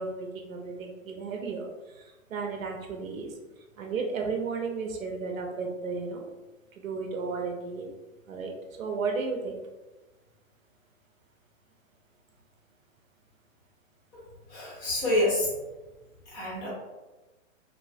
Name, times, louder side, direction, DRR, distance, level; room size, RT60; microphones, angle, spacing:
voice 1, 0.0-3.3 3.8-6.3 6.7-7.9 8.3-8.5 8.8-9.6, right 4 dB, 80° right, 2 dB, 0.8 m, -34 dB
voice 2, 14.5-15.5 16.3-16.7, left 1 dB, 10° left, -6 dB, 0.5 m, -27 dB
3.2 x 2.1 x 2.6 m, 1.2 s
hypercardioid pair, 150°, 39 cm